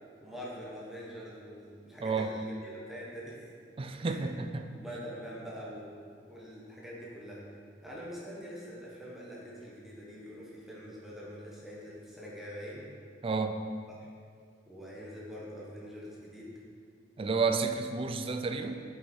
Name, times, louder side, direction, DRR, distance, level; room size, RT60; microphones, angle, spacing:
voice 1, 0.2-3.5 4.0-4.3 4.7-5.9 6.3-7.4 7.8-12.9 13.9-14.1 14.7-16.5, equal, ahead, -6 dB, 1.2 m, -44 dB
voice 2, 2.0-2.3 3.8-4.7 13.2-13.6 17.2-18.7, right 4 dB, 30° right, 7 dB, 0.4 m, -31 dB
7.0 x 5.5 x 4.4 m, 2.2 s
head